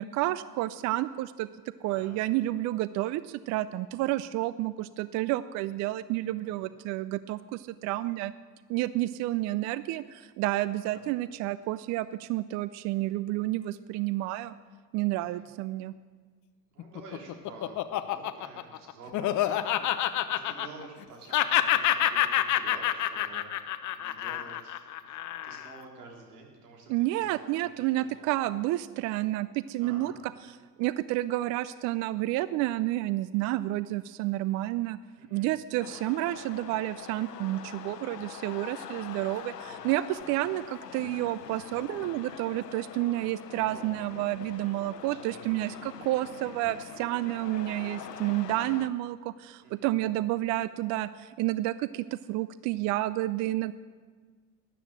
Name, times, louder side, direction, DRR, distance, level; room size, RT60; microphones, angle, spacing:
voice 1, 0.0-1.5 1.8-8.3 8.7-14.5 14.9-15.9 26.9-35.0 35.3-53.7, right 16 dB, 40° right, 16 dB, 0.4 m, -30 dB
voice 2, 6.4-6.7 10.9-11.0 15.1-15.5 16.7-28.4 29.8-30.2 35.2-35.5 39.6-39.8 40.2-40.4 43.7-44.0 45.0-45.7 49.6-49.9, right 3 dB, 70° right, 0 dB, 3.4 m, -50 dB
Laughter, 16.8-21.0 21.3-25.8, left 13 dB, 40° left, 0.8 m, -28 dB
sound 1, 35.8-48.9, left 9 dB, 85° left, 0.8 m, -44 dB
13.5 x 9.9 x 7.4 m, 1.5 s
hypercardioid pair, 75°, 47 cm